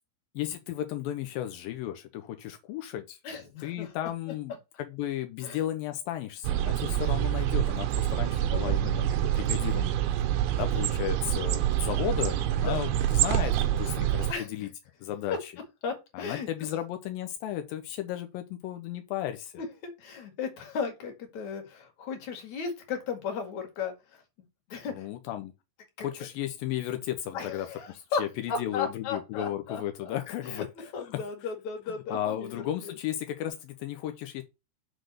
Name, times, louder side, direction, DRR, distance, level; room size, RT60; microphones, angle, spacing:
voice 1, 0.3-3.2 3.6-9.9 10.6-14.7 15.0-15.5 16.1-19.6 24.9-25.5 26.0-31.2 32.1-34.4, left 12 dB, 85° left, 2.1 m, -34 dB
voice 2, 3.2-4.1 5.4-5.6 8.5-8.8 12.7-12.8 14.3-14.7 15.8-16.5 19.6-24.2 24.7-25.1 26.0-26.1 27.3-28.2 28.5-30.2 30.4-32.9, left 5 dB, 50° left, 2.8 m, -36 dB
sound 1, 6.4-14.3, right 12 dB, 75° right, 2.3 m, -27 dB
6.6 x 4.0 x 6.4 m
omnidirectional pair, 5.0 m